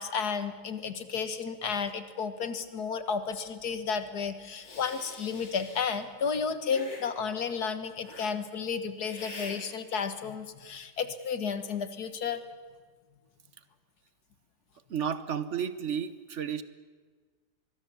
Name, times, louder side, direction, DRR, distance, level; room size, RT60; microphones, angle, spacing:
voice 1, 0.0-12.4, left 6 dB, 60° left, 11 dB, 1.8 m, -32 dB
Hiss, 4.6-6.0 6.7-7.1 8.0-8.3 9.0-9.6, left 2 dB, 80° left, 3.9 m, -45 dB
voice 2, 14.9-16.6, right 8 dB, 50° right, 14 dB, 0.9 m, -32 dB
25.0 x 21.0 x 7.0 m, 1.5 s
omnidirectional pair, 2.0 m